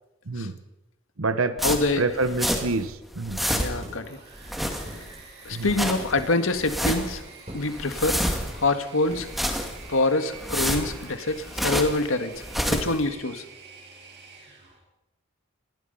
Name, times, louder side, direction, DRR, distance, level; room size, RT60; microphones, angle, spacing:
voice 1, 0.3-0.6 1.2-1.6 2.0-3.4 5.5-5.7, right 3 dB, 85° right, 11 dB, 1.1 m, -27 dB
voice 2, 1.6-2.0 3.5-4.2 5.5-7.2 7.5-8.2 8.5-9.3 9.9-13.4, left 2 dB, 80° left, 8 dB, 1.9 m, -25 dB
sound 1, 1.6-2.9 3.1-4.0 4.4-5.2 5.5-6.1 6.5-7.2 7.6-8.7 9.1-9.9 10.3-12.0 12.4-13.0, equal, ahead, 2.2 m, -29 dB
Engine / Mechanisms, 3.6-14.8, right 4 dB, 50° right, 7.3 m, -47 dB
sound 2, 3.8-4.0 4.9-5.1 5.6-5.8 6.2-6.4 6.8-7.1 7.5-7.7 8.3-8.7 9.1-9.4, equal, 30° right, 7.0 m, -40 dB
26.5 x 20.0 x 5.6 m, 1.0 s
head